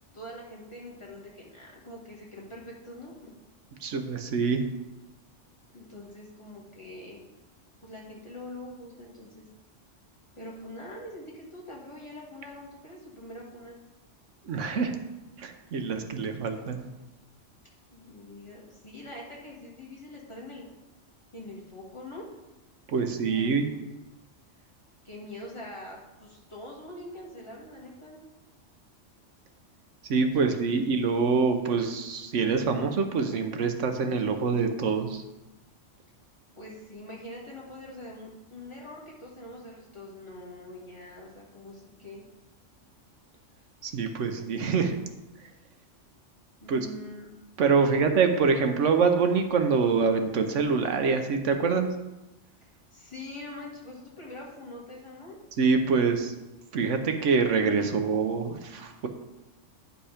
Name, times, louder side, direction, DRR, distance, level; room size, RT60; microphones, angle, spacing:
voice 1, 0.1-3.3 5.7-7.2 7.8-9.5 10.4-13.8 17.9-20.7 21.3-22.2 23.0-23.7 25.0-28.2 30.3-30.9 36.5-42.2 46.6-47.3 47.9-48.0 52.9-55.4, left 1 dB, 25° left, -4 dB, 2.0 m, -44 dB
voice 2, 3.8-4.7 14.5-14.9 15.4-16.9 22.9-23.7 30.1-35.2 43.8-44.9 46.7-46.9 47.6-51.9 55.6-56.3 56.7-59.1, right 5 dB, 75° right, 6 dB, 1.2 m, -25 dB
10.0 x 5.3 x 5.0 m, 1.0 s
omnidirectional pair, 1.3 m